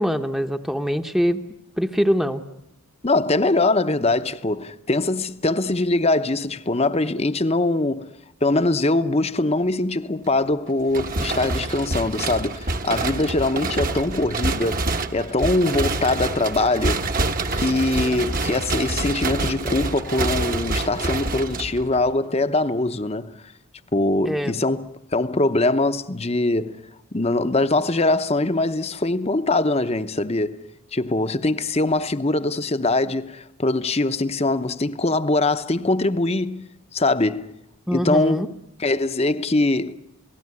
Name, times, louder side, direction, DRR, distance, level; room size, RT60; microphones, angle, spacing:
voice 1, 0.0-1.4 1.8-2.4 24.2-24.5 37.9-38.5, equal, ahead, 0.9 m, -23 dB
voice 2, 3.0-8.1 8.4-14.9 15.1-17.0 17.5-23.3 23.9-26.8 27.1-30.6 30.9-37.5 37.9-38.5 38.8-39.9, left 2 dB, 30° left, 0.8 m, -22 dB
sound 1, 10.9-22.1, right 2 dB, 40° right, 1.2 m, -26 dB
28.5 x 18.0 x 9.7 m
head